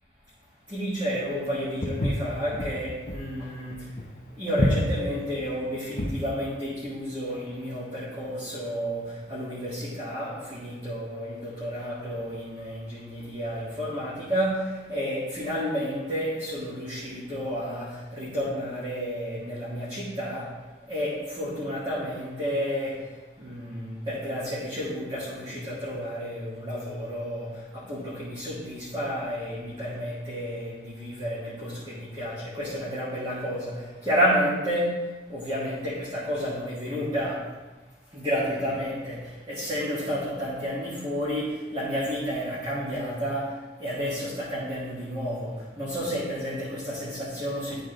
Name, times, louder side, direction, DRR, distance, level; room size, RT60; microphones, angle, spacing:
voice 1, 0.7-4.1 4.4-20.6 20.9-37.5 38.1-47.8, equal, 25° right, -9 dB, 1.5 m, -31 dB
Walk footsteps, 1.8-6.3, left 1 dB, 40° left, 0.7 m, -28 dB
11.0 x 3.8 x 3.8 m, 1.3 s
head